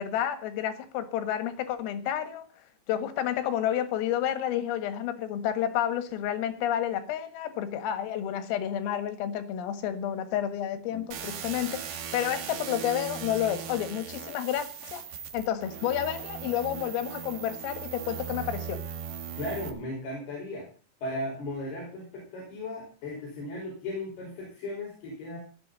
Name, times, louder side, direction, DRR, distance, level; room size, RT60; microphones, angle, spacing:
voice 1, 0.0-2.5 2.9-15.0 15.3-18.8, left 10 dB, 85° left, 4.2 m, -30 dB
sound 1, 11.1-19.7, right 7 dB, 65° right, 3.7 m, -38 dB
voice 2, 19.4-20.7 21.0-25.4, left 1 dB, 50° left, 6.8 m, -36 dB
18.0 x 13.0 x 4.1 m
omnidirectional pair, 5.9 m